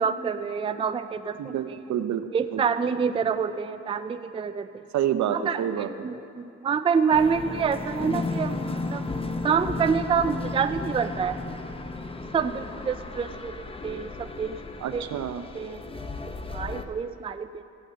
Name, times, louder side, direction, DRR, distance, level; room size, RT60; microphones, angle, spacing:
voice 1, 0.0-1.8 2.3-4.9 5.3-8.6 8.9-9.0 9.4-11.4 12.3-13.5 13.8-14.6 14.9-15.0 15.5-15.8 16.3-17.6, right 6 dB, 20° right, 10 dB, 0.4 m, -27 dB
voice 2, 1.4-2.2 2.5-2.6 4.9-5.9 14.8-15.4, right 10 dB, 70° right, 10 dB, 0.8 m, -28 dB
sound 1, 7.1-16.9, left 3 dB, 20° left, 0.8 m, -34 dB
15.5 x 6.4 x 7.6 m, 2.7 s
cardioid pair, 90°, 30 cm